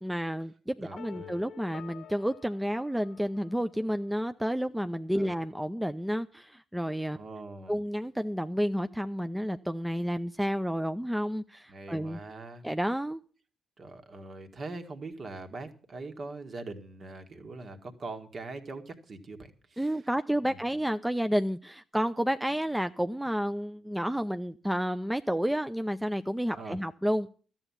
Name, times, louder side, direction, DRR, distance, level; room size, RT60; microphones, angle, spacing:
voice 1, 0.0-7.2 7.7-12.2 12.6-13.2 19.8-27.3, equal, 5° right, 10 dB, 0.6 m, -30 dB
voice 2, 0.8-1.4 5.2-5.3 7.1-7.8 11.7-12.6 13.8-19.9 20.4-20.6 26.6-26.8, right 3 dB, 45° right, 6 dB, 1.9 m, -42 dB
sound 1, 1.0-3.9, left 9 dB, 60° left, 0.9 m, -49 dB
13.5 x 8.0 x 7.2 m, 0.40 s
figure-of-eight pair, 40°, 0 cm